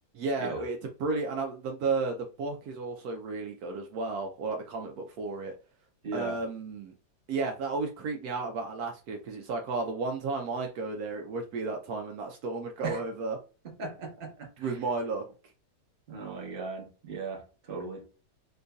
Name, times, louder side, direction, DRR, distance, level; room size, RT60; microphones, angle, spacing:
voice 1, 0.1-5.5 6.1-6.9 7.3-13.4 14.6-15.2, right 3 dB, 70° right, 1.0 m, -33 dB
voice 2, 6.0-6.4 12.8-13.0 13.8-14.8 16.1-18.0, right 4 dB, 40° right, 1.0 m, -38 dB
4.6 x 2.6 x 2.2 m
omnidirectional pair, 1.7 m